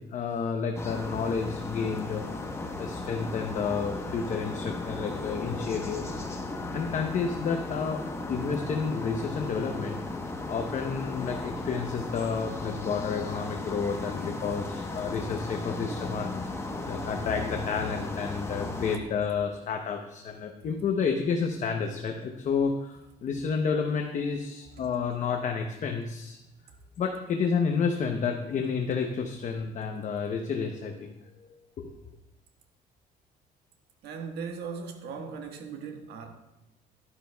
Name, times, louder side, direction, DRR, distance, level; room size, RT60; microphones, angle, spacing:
voice 1, 0.0-2.5 2.8-8.0 8.3-10.2 10.5-16.3 16.6-26.4 27.0-31.1 31.8-31.9, left 5 dB, 45° left, 0.8 m, -30 dB
sound 1, 0.7-19.0, left 2 dB, 15° left, 1.0 m, -36 dB
voice 2, 34.0-36.3, right 5 dB, 75° right, 1.4 m, -38 dB
11.5 x 9.7 x 2.3 m
cardioid pair, 110°, 17 cm